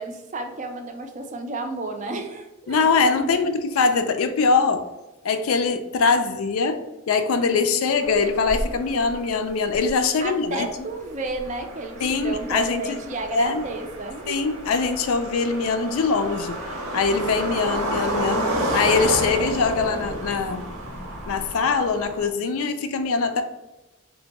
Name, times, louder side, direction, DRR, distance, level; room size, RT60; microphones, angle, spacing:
voice 1, 0.0-3.4 10.2-14.4, right 2 dB, 35° right, 5 dB, 0.4 m, -32 dB
voice 2, 2.7-4.9 5.2-10.7 12.0-13.0 13.3-13.7 14.3-16.6 16.9-20.7 21.3-23.4, left 4 dB, 85° left, 8 dB, 0.4 m, -22 dB
sound 1, 8.0-22.3, right 1 dB, 90° right, 0.8 m, -31 dB
3.3 x 2.2 x 4.0 m, 1.0 s
head